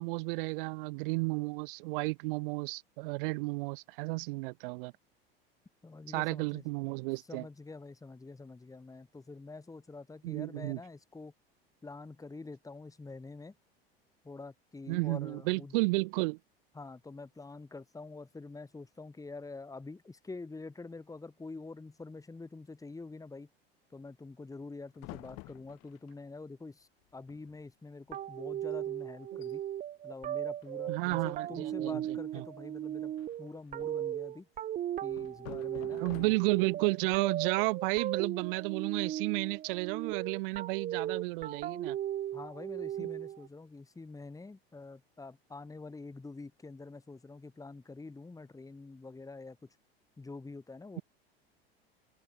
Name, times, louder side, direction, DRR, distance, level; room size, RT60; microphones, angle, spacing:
voice 1, 0.0-4.9 6.1-7.4 10.2-10.8 14.9-16.4 30.9-32.0 32.3-32.4 36.0-42.0, right 26 dB, 60° right, 0.7 m, -32 dB
voice 2, 5.8-6.6 7.3-11.3 11.8-13.6 14.2-15.8 16.7-23.5 23.9-29.6 30.0-33.1 33.4-34.5 35.0-36.3 42.3-49.7 50.2-51.0, left 3 dB, 10° left, 2.2 m, -46 dB
sound 1, 25.0-26.2 27.0-27.1 27.3-27.7 28.0-28.2 28.7-28.8 29.2-29.5 30.6-31.2 33.2-34.1 35.1-36.7, left 25 dB, 55° left, 3.8 m, -50 dB
sound 2, 28.1-43.5, right 11 dB, 25° right, 0.6 m, -37 dB
open air
hypercardioid pair, 80°, 30 cm